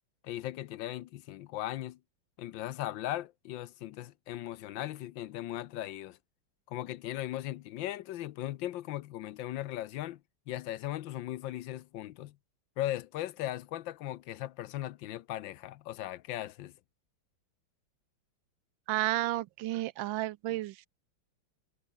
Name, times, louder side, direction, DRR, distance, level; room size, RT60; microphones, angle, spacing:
voice 1, 0.2-2.0 2.4-6.2 6.7-10.2 10.5-12.4 12.8-16.7, left 14 dB, 75° left, 1.4 m, -38 dB
voice 2, 18.9-20.9, right 16 dB, 80° right, 1.3 m, -32 dB
omnidirectional pair, 2.2 m